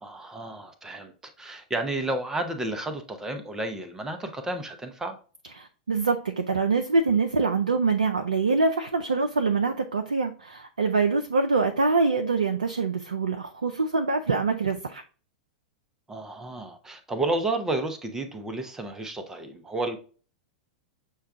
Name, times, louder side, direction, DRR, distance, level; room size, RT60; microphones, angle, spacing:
voice 1, 0.0-5.2 16.1-20.0, right 2 dB, 10° right, 7 dB, 0.6 m, -31 dB
voice 2, 5.6-15.0, right 4 dB, 80° right, 6 dB, 0.4 m, -24 dB
6.3 x 2.3 x 3.5 m, 0.38 s
figure-of-eight pair, 95°, 4 cm